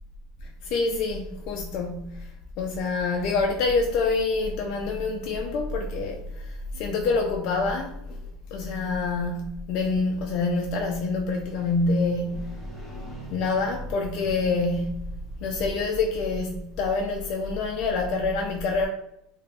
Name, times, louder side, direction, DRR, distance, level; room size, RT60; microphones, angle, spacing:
voice 1, 0.4-2.3 2.6-8.2 8.5-12.6 13.3-15.1 15.4-18.9, left 3 dB, 55° left, 0.3 m, -26 dB
Motorcycle, 11.1-16.9, right 1 dB, 10° left, 0.9 m, -46 dB
3.2 x 2.1 x 2.4 m
supercardioid pair, 135°, 0 cm